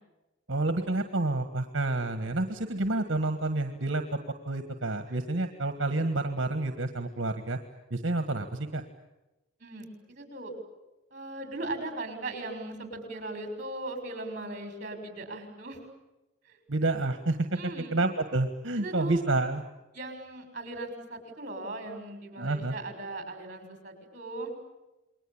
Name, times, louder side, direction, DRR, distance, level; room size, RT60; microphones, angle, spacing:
voice 1, 0.5-4.2 4.4-7.6 7.9-8.8 16.7-19.6 22.4-22.7, right 2 dB, 70° right, 8 dB, 1.6 m, -29 dB
voice 2, 9.6-10.5 11.1-15.8 16.5-16.6 17.5-17.9 18.8-19.2 19.9-24.5, right 2 dB, 40° right, 6 dB, 6.5 m, -38 dB
29.0 x 22.0 x 8.8 m, 1.0 s
head